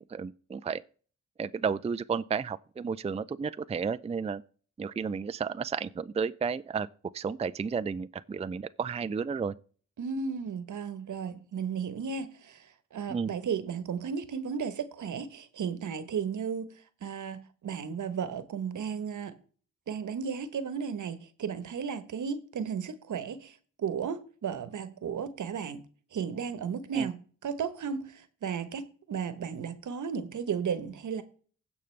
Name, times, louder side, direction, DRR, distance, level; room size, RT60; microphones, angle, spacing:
voice 1, 0.1-0.8 1.4-4.4 4.8-6.9 7.1-9.5 13.1-13.3 26.9-27.1, right 5 dB, 20° right, 0.4 m, -32 dB
voice 2, 10.0-16.7 17.0-19.4 19.9-25.9 26.1-31.2, right 6 dB, 75° right, 1.1 m, -34 dB
16.0 x 5.4 x 3.3 m
cardioid pair, 65°, 31 cm